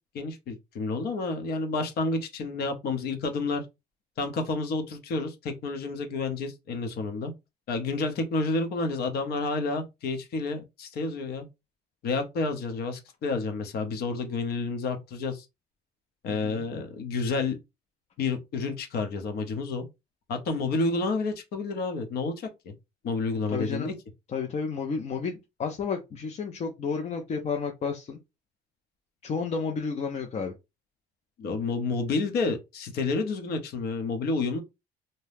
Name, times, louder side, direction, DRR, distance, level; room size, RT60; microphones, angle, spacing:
voice 1, 0.1-3.6 4.2-7.3 7.7-11.5 12.0-15.5 16.2-17.6 18.2-19.8 20.3-22.7 23.0-23.9 31.4-34.6, left 3 dB, 70° left, 0.8 m, -30 dB
voice 2, 16.3-16.6 23.5-23.9 24.3-28.2 29.2-30.5, left 5 dB, 40° left, 0.5 m, -31 dB
2.7 x 2.2 x 3.4 m
cardioid pair, 110°, 17 cm